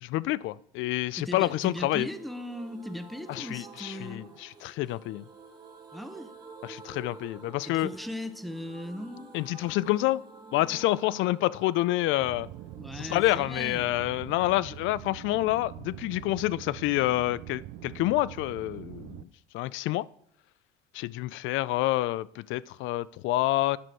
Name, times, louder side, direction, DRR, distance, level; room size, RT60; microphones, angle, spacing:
voice 1, 0.0-2.1 3.3-5.2 6.6-7.9 9.3-10.2 10.5-12.5 12.9-19.3 19.5-20.1 20.9-23.8, left 16 dB, 70° left, 20 dB, 0.4 m, -28 dB
voice 2, 1.2-4.3 5.9-6.3 7.6-9.3 12.8-14.2, left 1 dB, ahead, 10 dB, 0.7 m, -38 dB
sound 1, 1.3-14.9 15.1-15.2 15.5-15.6, right 4 dB, 20° right, 1.4 m, -50 dB
sound 2, 12.2-19.2, right 14 dB, 90° right, 0.5 m, -44 dB
10.0 x 6.1 x 4.6 m, 0.67 s
cardioid pair, 110°, 21 cm